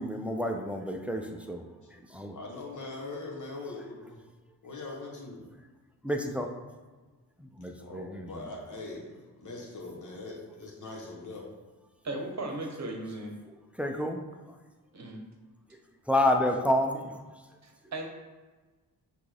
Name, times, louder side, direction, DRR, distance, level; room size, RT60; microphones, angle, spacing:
voice 1, 0.0-1.6 2.1-2.4 6.0-6.5 7.4-8.5 13.8-14.2 16.1-17.2, left 1 dB, 5° right, 3 dB, 0.4 m, -29 dB
voice 2, 2.3-4.2 4.6-5.4 7.8-11.5, left 2 dB, 50° left, -1 dB, 1.2 m, -41 dB
voice 3, 12.0-13.4 14.9-15.2 17.6-18.1, right 2 dB, 45° right, 2 dB, 0.9 m, -36 dB
5.9 x 2.5 x 3.3 m, 1.3 s
cardioid pair, 70°, 39 cm